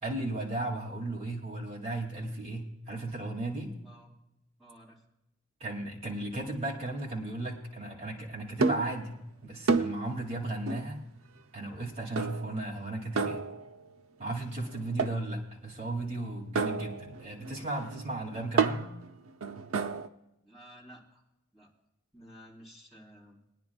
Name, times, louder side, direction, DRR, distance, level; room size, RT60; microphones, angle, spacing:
voice 1, 0.0-3.7 5.6-9.2 9.4-11.0 11.5-13.5 14.2-18.9, right 2 dB, 30° right, -3 dB, 2.5 m, -35 dB
voice 2, 3.8-4.1 4.6-5.0 20.4-21.2 21.5-21.7 22.1-23.4, equal, ahead, -5 dB, 3.6 m, -53 dB
sound 1, 8.6-9.0 9.7-10.1 10.7-11.0 12.2-12.6 13.2-13.9 15.0-15.3 16.6-20.1, right 4 dB, 80° right, 0.6 m, -31 dB
22.5 x 10.5 x 2.4 m, 0.87 s
head